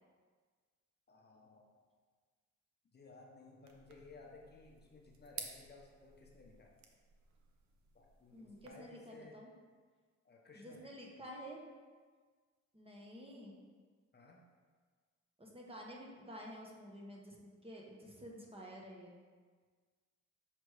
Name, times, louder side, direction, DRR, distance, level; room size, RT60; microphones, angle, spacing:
voice 1, 1.1-1.7 2.9-6.7 7.9-9.4 10.2-10.9 14.1-14.4, left 3 dB, 35° left, -1 dB, 0.9 m, -58 dB
sound 1, 3.6-8.7, right 6 dB, 65° right, 0.8 m, -54 dB
voice 2, 8.3-9.5 10.5-11.6 12.7-13.5 15.4-17.4 17.6-19.2, equal, 20° right, -2 dB, 1.1 m, -50 dB
6.2 x 3.3 x 4.8 m, 1.5 s
cardioid pair, 90°, 30 cm